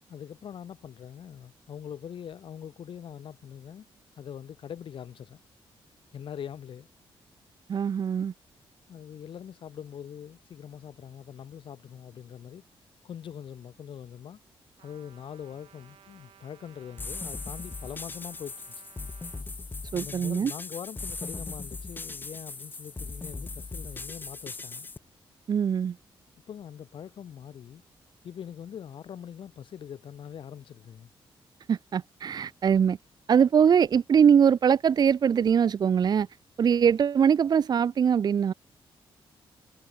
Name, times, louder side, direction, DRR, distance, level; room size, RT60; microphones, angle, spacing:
voice 1, 0.1-3.9 4.2-5.4 6.1-6.9 8.9-12.6 13.0-14.4 14.8-18.8 19.9-24.9 26.5-27.8 28.2-31.1, left 8 dB, 65° left, 3.6 m, -42 dB
voice 2, 7.7-8.3 19.9-20.5 25.5-26.0 31.7-33.0 33.3-36.3 36.6-38.5, right 7 dB, 45° right, 0.6 m, -22 dB
Trumpet, 14.8-19.5, right 11 dB, 85° right, 2.8 m, -58 dB
sound 1, 17.0-25.0, left 3 dB, 20° left, 0.7 m, -39 dB
cardioid pair, 115°, 9 cm